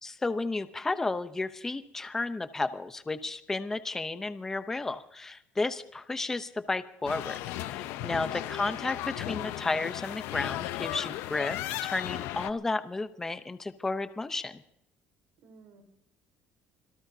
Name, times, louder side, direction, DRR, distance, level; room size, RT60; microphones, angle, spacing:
voice 1, 0.0-11.6 11.8-14.5, left 3 dB, 10° left, 11 dB, 0.7 m, -33 dB
sound 1, 7.1-12.5, left 14 dB, 75° left, 0.7 m, -35 dB
voice 2, 7.8-8.5 15.4-15.8, right 3 dB, 65° right, 5 dB, 4.7 m, -55 dB
25.5 x 18.0 x 2.8 m, 0.77 s
cardioid pair, 175°, 4 cm